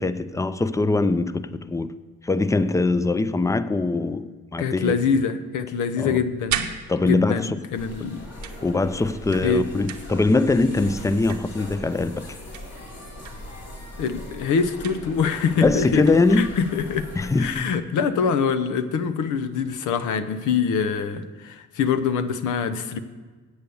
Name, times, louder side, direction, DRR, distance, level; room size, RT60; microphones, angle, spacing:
voice 1, 0.0-1.9 2.2-5.2 6.0-6.2 6.9-7.6 8.6-12.3 15.6-16.6 17.2-17.7, left 3 dB, 10° left, 0.4 m, -22 dB
voice 2, 4.6-6.7 7.0-8.2 9.4-9.7 14.0-17.1 17.4-23.0, left 6 dB, 80° left, 0.8 m, -24 dB
sound 1, 6.2-7.5 8.4-10.3 10.6-11.9 12.5-13.5 14.8-15.3 15.6-16.7 18.2-18.3 18.8-19.0 19.4-20.2, right 9 dB, 70° right, 0.8 m, -36 dB
sound 2, 7.7-17.6, left 1 dB, 55° left, 2.8 m, -40 dB
8.1 x 8.0 x 6.9 m
cardioid pair, 90°, 30 cm